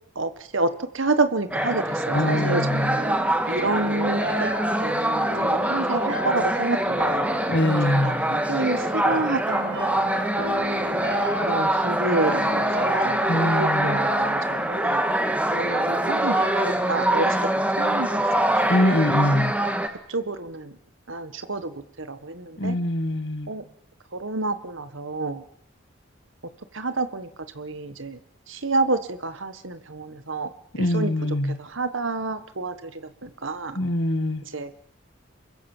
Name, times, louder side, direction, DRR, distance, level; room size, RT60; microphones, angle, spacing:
voice 1, 0.1-4.5 4.8-7.0 7.6-7.8 8.0-10.3 11.4-15.0 15.6-18.2 18.5-19.1 19.9-20.8 21.1-22.8 23.5-23.6 24.1-25.4 26.7-27.3 27.5-28.2 28.5-31.1 31.5-33.8 34.5-34.7, right 3 dB, 80° right, 11 dB, 1.6 m, -29 dB
sound 1, 1.5-19.9, right 1 dB, 5° right, 2.0 m, -24 dB
voice 2, 2.1-3.0 7.5-8.4 13.3-14.0 18.7-19.6 22.6-23.5 30.7-31.6 33.7-34.4, left 1 dB, 60° left, 10 dB, 2.1 m, -23 dB
sound 2, 3.5-17.2, equal, 55° right, 6.2 m, -34 dB
27.0 x 22.5 x 7.4 m, 0.70 s
head